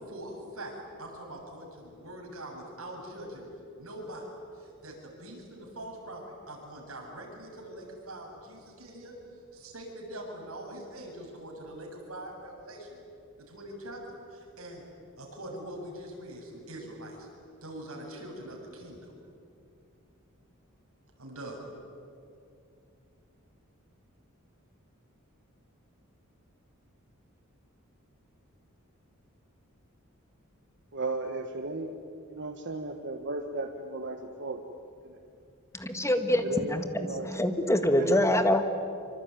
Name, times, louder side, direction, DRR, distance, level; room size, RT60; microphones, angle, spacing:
voice 1, 0.1-0.7 1.0-3.5 3.8-4.3 4.5-9.1 9.5-13.0 13.5-14.8 15.2-17.3 17.6-19.1 21.2-21.6, right 1 dB, 75° right, 0 dB, 7.3 m, -43 dB
voice 2, 30.9-31.9 32.3-34.6 35.0-35.2 36.4-37.3 37.9-38.2, right 2 dB, 55° right, 4 dB, 1.5 m, -35 dB
voice 3, 35.7-38.6, left 1 dB, 15° left, 8 dB, 1.7 m, -25 dB
25.5 x 25.0 x 9.3 m, 2.5 s
head